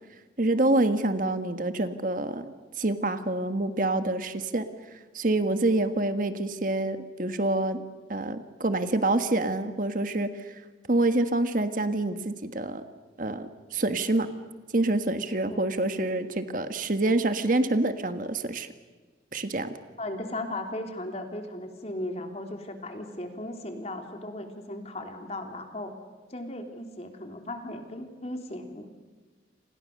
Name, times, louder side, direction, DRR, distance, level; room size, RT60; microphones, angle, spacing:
voice 1, 0.4-4.6 4.9-7.8 8.1-10.6 10.9-12.8 13.2-14.3 14.7-18.7 19.3-19.7, right 2 dB, 45° right, 9 dB, 1.6 m, -27 dB
voice 2, 20.0-25.9 26.3-28.9, left 1 dB, 35° left, 5 dB, 3.3 m, -36 dB
29.5 x 27.0 x 6.7 m, 1.3 s
head